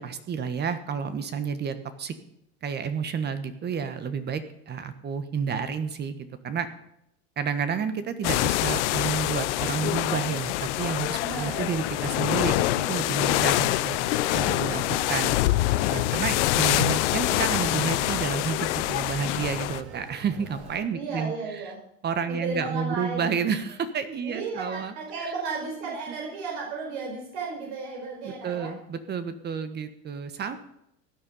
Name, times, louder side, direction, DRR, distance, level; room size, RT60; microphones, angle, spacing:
voice 1, 0.0-2.1 2.6-6.7 7.4-14.0 14.3-15.3 15.9-21.3 22.0-24.9 25.2-25.3 25.8-26.2 28.2-30.6, right 6 dB, 30° right, 11 dB, 1.3 m, -30 dB
sound 1, 8.2-19.8, left 17 dB, 80° left, 0.8 m, -25 dB
voice 2, 11.2-11.7 20.9-21.8 22.2-23.3 24.2-28.7, right 4 dB, 75° right, -1 dB, 4.8 m, -34 dB
Conversation, 11.7-20.8, right 4 dB, 45° right, 4.5 m, -43 dB
16.0 x 10.0 x 5.4 m, 0.77 s
supercardioid pair, 125°, 35 cm